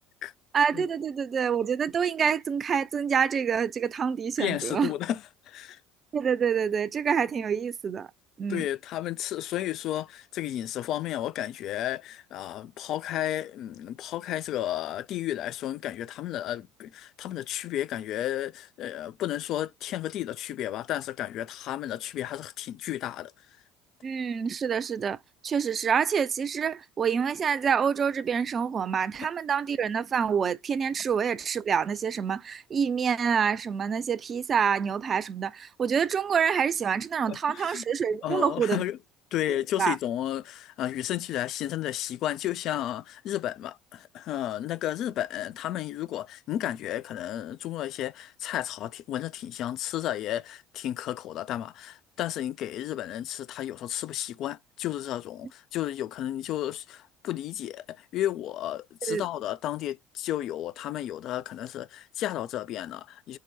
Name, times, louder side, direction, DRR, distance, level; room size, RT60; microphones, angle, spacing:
voice 1, 0.5-4.9 6.1-8.1 8.4-8.6 24.0-25.2 25.4-38.8 39.8-40.0 59.1-59.2, right 7 dB, 40° right, 0.5 m, -27 dB
voice 2, 4.4-5.8 8.5-23.3 37.3-37.8 38.2-39.0 39.3-63.4, left 12 dB, 60° left, 0.4 m, -33 dB
4.8 x 2.1 x 4.2 m
hypercardioid pair, 65°, 0 cm